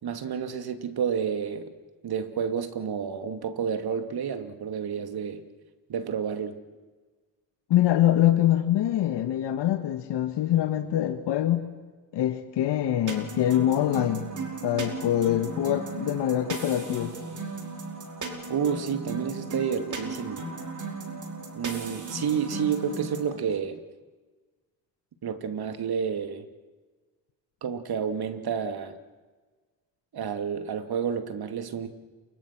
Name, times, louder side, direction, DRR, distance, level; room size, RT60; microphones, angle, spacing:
voice 1, 0.0-1.7 2.0-5.4 5.9-6.6 18.5-20.4 21.5-23.8 25.2-26.5 27.6-29.0 30.1-31.9, right 7 dB, 60° right, 8 dB, 2.8 m, -30 dB
voice 2, 7.7-11.7 12.1-14.2 14.6-17.1, left 12 dB, 75° left, 8 dB, 1.8 m, -24 dB
sound 1, 13.1-23.4, right 3 dB, 45° right, 5.3 m, -36 dB
28.0 x 24.5 x 6.2 m, 1.3 s
supercardioid pair, 55°, 42 cm